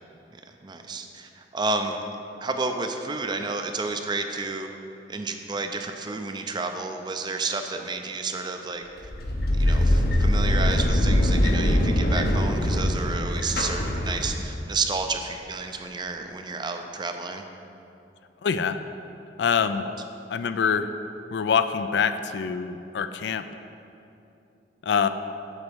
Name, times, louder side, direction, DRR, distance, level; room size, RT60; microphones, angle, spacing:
voice 1, 0.6-2.0 2.4-4.7 5.1-9.1 9.5-17.4, right 3 dB, 25° right, 5 dB, 0.5 m, -31 dB
sound 1, 9.0-14.6, left 1 dB, 60° left, 0.8 m, -22 dB
voice 2, 18.4-18.8 19.4-19.8 20.3-20.9 21.3-23.5 24.8-25.1, left 6 dB, 75° left, 10 dB, 0.4 m, -24 dB
8.0 x 4.1 x 6.8 m, 2.8 s
head